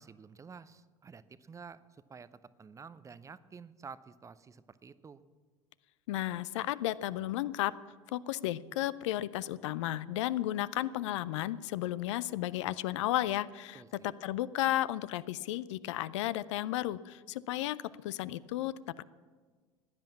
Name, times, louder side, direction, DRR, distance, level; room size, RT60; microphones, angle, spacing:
voice 1, 0.0-5.2 13.7-14.1, right 5 dB, 20° right, 15 dB, 0.6 m, -51 dB
voice 2, 6.1-7.7 8.1-19.0, left 14 dB, 60° left, 18 dB, 0.5 m, -33 dB
16.0 x 10.5 x 7.2 m, 1.5 s
figure-of-eight pair, 75°, 17 cm